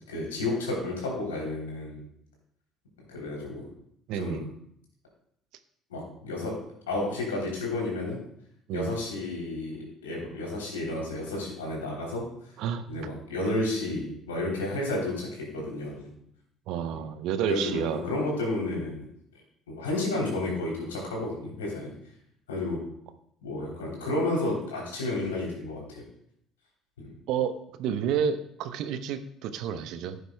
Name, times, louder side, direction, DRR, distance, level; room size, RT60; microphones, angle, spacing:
voice 1, 0.1-2.0 3.1-3.7 4.2-4.5 5.9-8.2 8.7-12.3 12.9-16.1 16.9-17.0 17.4-19.1 19.7-21.9 22.5-22.8 23.4-26.0 27.0-27.1, left 2 dB, 80° left, -2 dB, 3.1 m, -31 dB
voice 2, 4.1-4.5 8.7-9.0 12.6-12.8 16.7-18.0 27.3-30.2, right 8 dB, 60° right, 11 dB, 0.7 m, -30 dB
15.0 x 7.9 x 2.2 m, 0.71 s
figure-of-eight pair, 55°, 0 cm